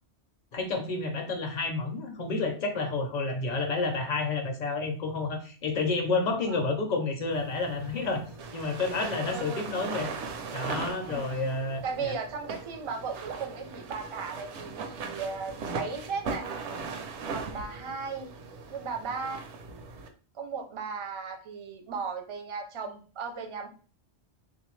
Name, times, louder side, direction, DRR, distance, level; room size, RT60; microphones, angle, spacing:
voice 1, 0.5-8.2 8.5-10.1 10.5-12.2, left 3 dB, 45° left, 5 dB, 0.7 m, -30 dB
sound 1, 7.3-20.1, right 4 dB, 80° right, 0.9 m, -39 dB
voice 2, 9.2-9.6 11.1-11.4 11.8-16.5 17.3-18.3 18.7-19.4 20.3-23.7, right 5 dB, 40° right, 5 dB, 0.4 m, -36 dB
3.5 x 2.5 x 3.0 m, 0.38 s
omnidirectional pair, 1.2 m